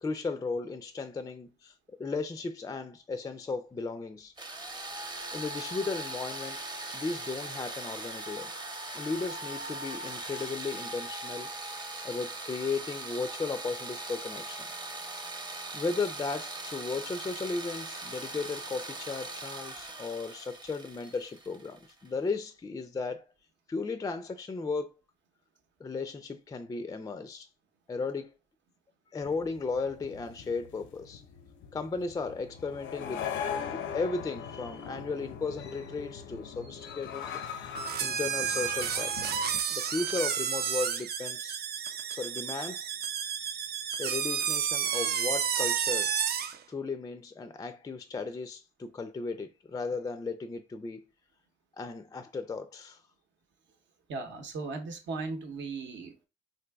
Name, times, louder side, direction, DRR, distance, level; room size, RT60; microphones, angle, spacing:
voice 1, 0.0-4.3 5.3-6.6 6.9-8.5 8.9-11.5 12.0-14.7 15.7-23.2 23.7-24.9 25.8-27.5 27.9-28.3 29.1-31.2 31.7-33.3 33.6-41.6 42.2-42.9 44.0-46.1 46.7-51.0 51.8-53.0, left 4 dB, 20° left, 0.3 m, -35 dB
sound 1, 4.4-22.1, right 2 dB, 20° right, 0.7 m, -40 dB
sound 2, 29.2-39.6, left 7 dB, 70° left, 0.5 m, -40 dB
sound 3, 37.7-46.6, right 8 dB, 55° right, 0.4 m, -31 dB
voice 2, 54.1-56.3, right 4 dB, 70° right, 0.9 m, -37 dB
3.9 x 2.7 x 2.3 m
cardioid pair, 90°, 20 cm